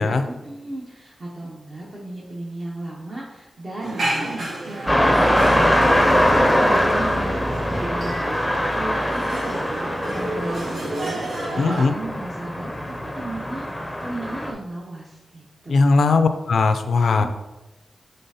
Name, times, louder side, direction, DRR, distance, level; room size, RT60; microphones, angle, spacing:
voice 1, 0.0-16.0 17.1-17.3, right 2 dB, 45° right, -5 dB, 0.9 m, -35 dB
sound 1, 3.8-11.8, right 1 dB, 85° right, 0.9 m, -30 dB
sound 2, 4.9-14.5, equal, 10° left, 0.5 m, -22 dB
voice 2, 11.6-11.9 15.7-17.3, left 4 dB, 80° left, 9 dB, 0.3 m, -18 dB
5.3 x 3.3 x 2.8 m, 1.0 s
cardioid pair, 75°, 0 cm